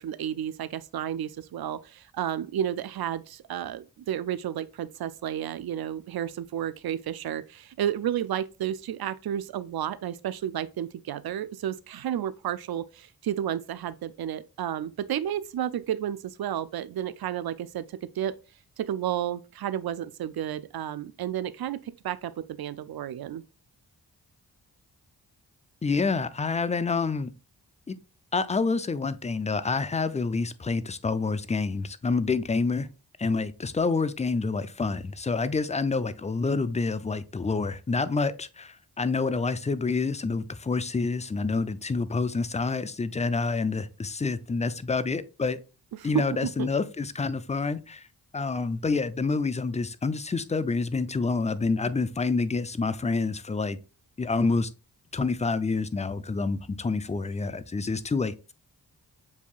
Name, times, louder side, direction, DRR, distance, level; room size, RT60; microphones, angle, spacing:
voice 1, 0.0-17.8 18.2-18.3 18.8-23.4 46.0-46.7, right 10 dB, 60° right, 0.5 m, -32 dB
voice 2, 25.8-27.3 27.9-28.0 28.3-32.9 33.2-45.6 46.0-48.1 48.3-53.8 54.2-54.7 55.1-58.5, left 4 dB, 20° left, 0.4 m, -28 dB
7.1 x 2.7 x 2.3 m
cardioid pair, 45°, 41 cm